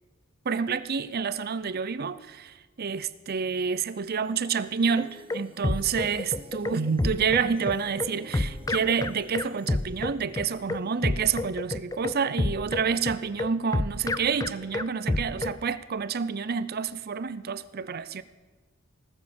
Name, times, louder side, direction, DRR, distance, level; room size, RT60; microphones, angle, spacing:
voice 1, 0.4-18.2, right 6 dB, 50° right, 0.6 m, -28 dB
sound 1, 3.6-12.8, right 1 dB, 25° right, 1.2 m, -51 dB
sound 2, 5.0-15.6, left 2 dB, 15° left, 0.4 m, -29 dB
19.0 x 7.4 x 6.8 m
head